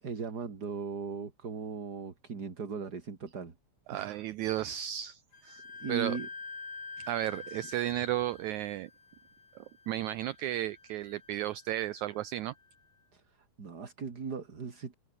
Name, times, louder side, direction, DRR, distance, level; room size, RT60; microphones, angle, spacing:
voice 1, 0.0-3.5 3.9-4.2 5.8-6.3 13.1-13.2 13.6-14.9, right 5 dB, 30° right, 2.6 m, -38 dB
voice 2, 3.9-5.6 5.9-6.2 7.0-8.9 9.6-12.5, right 13 dB, 75° right, 1.9 m, -34 dB
Wind instrument woodwind instrument, 5.3-12.8, left 4 dB, 80° left, 8.0 m, -48 dB
omnidirectional pair, 3.8 m